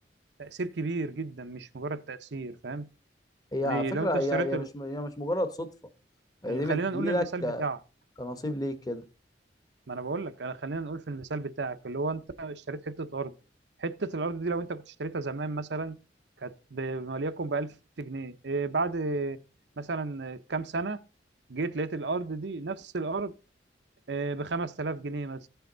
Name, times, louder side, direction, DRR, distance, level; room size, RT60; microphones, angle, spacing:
voice 1, 0.4-2.9 3.6-4.7 6.5-7.8 9.9-13.3 13.8-16.0 16.4-19.4 19.8-21.0 21.5-23.3 24.1-25.5, right 3 dB, 75° right, 0.8 m, -33 dB
voice 2, 3.5-5.7 6.4-7.6 8.2-9.0, left 1 dB, 20° left, 1.0 m, -30 dB
15.0 x 5.7 x 3.9 m
head